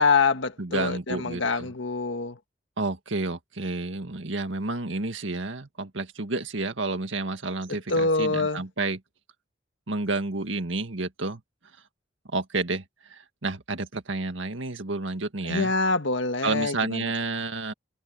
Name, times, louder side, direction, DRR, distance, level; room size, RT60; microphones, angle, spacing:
voice 1, 0.0-2.4 7.9-8.6 15.4-17.1, left 3 dB, 75° left, 1.7 m, -25 dB
voice 2, 0.6-1.7 2.8-9.0 9.9-11.4 12.3-12.8 13.1-15.7 16.4-17.7, right 3 dB, 80° right, 1.9 m, -30 dB
head